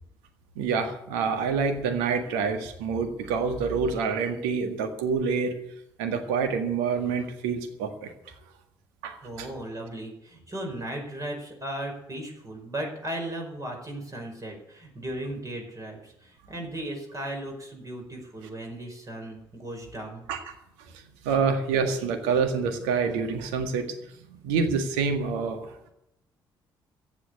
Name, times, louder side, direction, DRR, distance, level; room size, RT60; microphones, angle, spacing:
voice 1, 0.6-5.5 6.0-8.1 9.0-9.5 20.3-20.5 21.2-23.9 24.3-25.9, right 5 dB, 65° right, 8 dB, 1.8 m, -27 dB
voice 2, 9.2-20.2, right 1 dB, 30° right, 1 dB, 4.9 m, -36 dB
14.5 x 7.5 x 8.5 m, 0.80 s
figure-of-eight pair, 45°, 12 cm